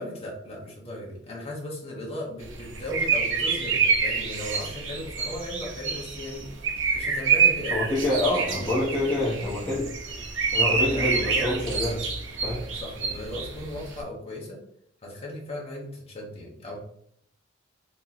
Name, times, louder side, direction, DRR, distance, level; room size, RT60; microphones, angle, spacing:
voice 1, 0.0-6.5 6.9-7.8 8.4-8.7 10.1-10.2 10.5-12.0 12.7-14.6 15.0-16.8, left 1 dB, 30° left, -3 dB, 1.0 m, -37 dB
sound 1, 2.4-14.0, right 5 dB, 80° right, 0.7 m, -27 dB
voice 2, 7.7-9.9 10.5-12.0 12.4-12.6, left 1 dB, 10° left, -10 dB, 0.8 m, -26 dB
3.0 x 2.9 x 3.9 m, 0.68 s
head